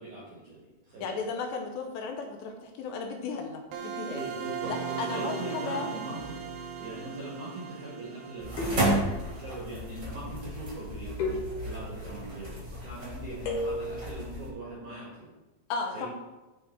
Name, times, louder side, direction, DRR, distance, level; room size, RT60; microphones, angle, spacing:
voice 1, 0.0-1.2 4.1-6.3 6.8-15.3 15.9-16.1, right 2 dB, 60° right, -6 dB, 2.2 m, -41 dB
voice 2, 1.0-4.2 4.7-5.9 15.7-16.1, left 4 dB, 80° left, 3 dB, 2.8 m, -35 dB
sound 1, 3.7-10.4, right 7 dB, 80° right, 2.3 m, -39 dB
sound 2, 6.2-6.7 8.6-9.5 11.2-12.1 13.5-14.2, left 2 dB, 65° left, 3.1 m, -35 dB
sound 3, 8.4-14.5, right 1 dB, 35° right, 1.3 m, -33 dB
10.5 x 3.5 x 4.3 m, 1.1 s
omnidirectional pair, 5.3 m